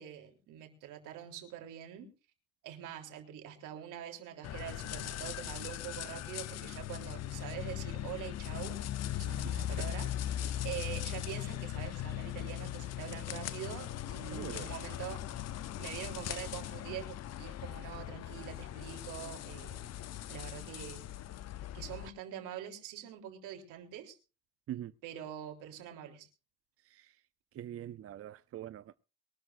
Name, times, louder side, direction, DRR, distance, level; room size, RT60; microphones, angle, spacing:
voice 1, 0.0-2.1 2.6-8.8 9.1-15.2 15.8-19.9 20.3-21.1 21.7-24.2 25.0-26.3, right 10 dB, 85° right, 3.6 m, -45 dB
sound 1, 4.4-22.1, left 12 dB, 55° left, 0.8 m, -39 dB
voice 2, 9.4-9.9 10.4-10.6 14.3-14.7 24.7-24.9 26.8-27.2 27.5-28.9, right 12 dB, 50° right, 0.6 m, -44 dB
23.0 x 12.5 x 2.6 m
cardioid pair, 100°, 30 cm